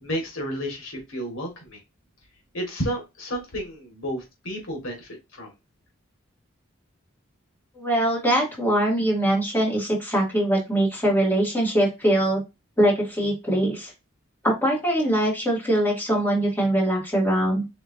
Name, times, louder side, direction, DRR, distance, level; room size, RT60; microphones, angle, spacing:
voice 1, 0.0-1.8 2.5-5.5, equal, 80° left, 2 dB, 2.0 m, -31 dB
voice 2, 7.7-12.4 12.8-13.9 14.4-17.6, right 1 dB, 10° left, -5 dB, 2.5 m, -22 dB
5.1 x 3.7 x 2.7 m, 0.23 s
head